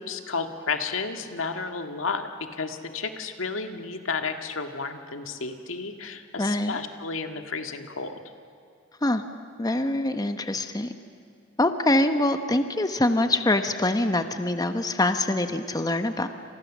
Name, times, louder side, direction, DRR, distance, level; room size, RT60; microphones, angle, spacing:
voice 1, 0.0-8.1, left 4 dB, 90° left, 6 dB, 1.8 m, -32 dB
voice 2, 6.4-6.8 9.0-9.2 9.6-10.9 11.6-16.3, left 1 dB, 20° left, 8 dB, 1.0 m, -24 dB
29.5 x 27.0 x 7.3 m, 2.4 s
head